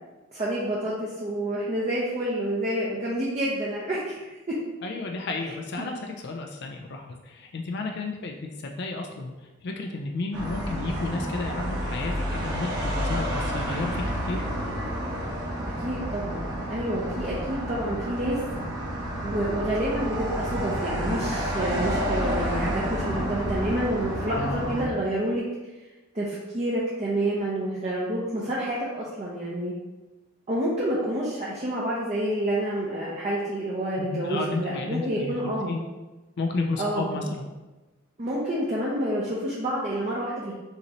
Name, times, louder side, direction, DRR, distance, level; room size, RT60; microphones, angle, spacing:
voice 1, 0.3-4.2 4.5-4.6 5.8-5.9 8.2-8.3 15.8-18.4 19.2-25.4 26.1-29.7 30.5-35.8 36.8-37.3 38.2-40.5, right 1 dB, 30° right, -6 dB, 0.7 m, -28 dB
voice 2, 4.8-8.4 8.6-9.3 9.6-14.4 24.3-24.8 34.0-35.8 36.4-37.5, left 3 dB, 55° left, 2 dB, 0.4 m, -32 dB
sound 1, 10.3-24.9, equal, 55° right, 1.2 m, -30 dB
5.5 x 3.0 x 2.9 m, 1.1 s
head